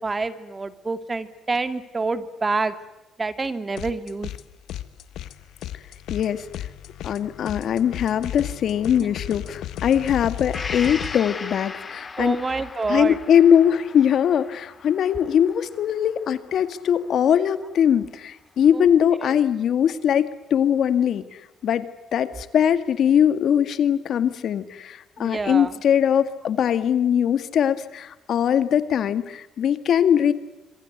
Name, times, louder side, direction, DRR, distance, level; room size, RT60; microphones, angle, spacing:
voice 1, 0.0-2.7 3.2-4.3 9.0-9.1 12.2-13.2 18.7-18.9 19.2-19.4 25.2-25.7, right 3 dB, 25° right, 12 dB, 2.4 m, -27 dB
sound 1, 3.8-4.4 4.7-11.1, left 12 dB, 85° left, 1.6 m, -35 dB
voice 2, 6.1-6.4 7.0-12.4 12.9-21.2 21.6-30.3, left 9 dB, 65° left, 12 dB, 2.1 m, -21 dB
Gong, 10.5-18.2 18.6-18.7, left 4 dB, 35° left, 2.9 m, -38 dB
26.5 x 25.0 x 8.2 m, 1.0 s
cardioid pair, 90°, 0 cm